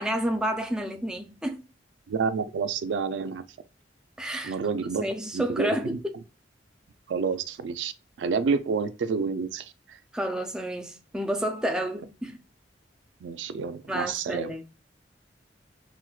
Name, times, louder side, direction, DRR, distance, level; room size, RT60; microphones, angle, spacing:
voice 1, 0.0-1.6 4.2-6.1 10.1-12.4 13.9-14.6, equal, 5° right, 0.3 m, -30 dB
voice 2, 2.1-3.4 4.4-6.0 7.1-7.9 8.2-10.0 13.2-14.5, right 5 dB, 80° right, 0.3 m, -29 dB
4.3 x 2.1 x 2.3 m
head